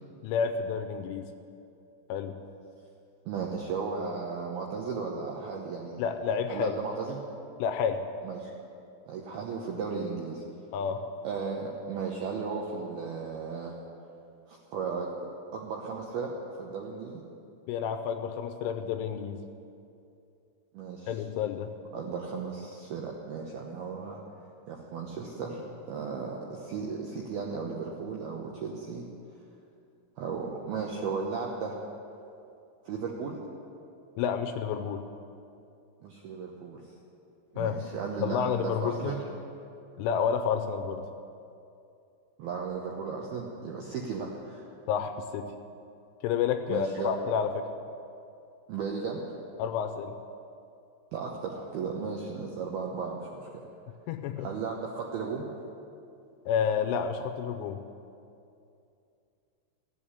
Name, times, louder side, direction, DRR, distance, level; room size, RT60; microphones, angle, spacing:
voice 1, 0.2-1.3 2.1-2.4 6.0-6.8 7.6-8.0 10.7-11.0 17.7-19.4 21.1-21.7 34.2-35.0 37.6-37.8 38.2-39.2 40.0-41.0 44.9-45.5 46.2-47.6 49.6-50.1 54.1-54.5 56.5-57.8, left 7 dB, 80° left, 6 dB, 2.9 m, -30 dB
voice 2, 3.3-6.0 6.5-7.2 8.2-8.5 9.1-10.4 11.2-13.7 14.5-15.1 15.5-16.3 16.6-17.2 20.7-21.2 21.9-24.2 24.7-29.1 30.2-31.8 32.9-33.4 36.0-36.8 37.5-39.2 42.4-44.6 46.7-47.1 48.7-49.2 51.1-53.5 54.4-55.5, right 5 dB, 75° right, -1 dB, 2.3 m, -35 dB
15.5 x 7.9 x 9.9 m, 2.6 s
omnidirectional pair, 5.9 m